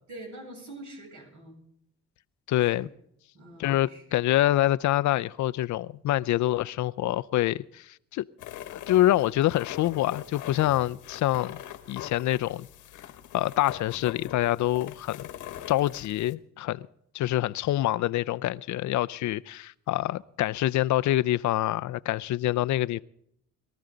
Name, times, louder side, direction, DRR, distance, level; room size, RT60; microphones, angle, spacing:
voice 1, 0.1-1.6 2.6-2.9 3.3-4.0 13.9-14.1, right 1 dB, 70° right, 7.6 m, -45 dB
voice 2, 2.5-2.9 3.6-7.9 8.1-8.2 8.7-11.6 11.9-12.7 13.3-15.3 15.7-16.9 17.1-23.0, left 14 dB, 70° left, 0.5 m, -26 dB
sound 1, 8.4-16.3, left 11 dB, 85° left, 1.3 m, -42 dB
22.5 x 13.5 x 3.9 m
cardioid pair, 90°, 30 cm